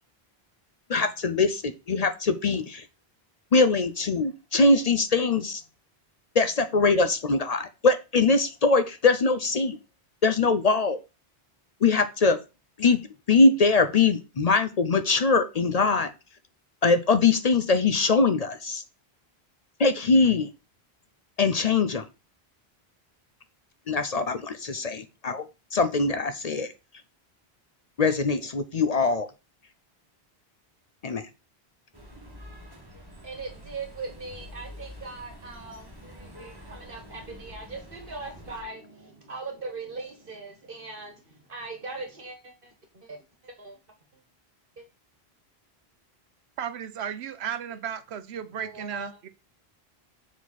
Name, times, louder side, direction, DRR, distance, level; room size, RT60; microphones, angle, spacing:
voice 1, 0.9-2.9 3.5-5.6 6.3-9.8 10.2-11.0 11.8-12.4 12.8-13.0 13.3-16.1 16.8-18.8 19.8-20.5 21.4-22.0 23.9-25.4 25.7-26.7 28.0-29.3 31.0-31.2, left 3 dB, 50° left, 0.5 m, -22 dB
sound 1, 31.9-38.6, equal, 20° right, 1.7 m, -46 dB
voice 2, 33.2-43.8 44.8-44.9 47.7-47.8 48.5-49.1, right 3 dB, 60° right, 1.5 m, -40 dB
voice 3, 46.6-49.3, right 8 dB, 85° right, 1.0 m, -34 dB
7.2 x 4.1 x 4.1 m
omnidirectional pair, 1.1 m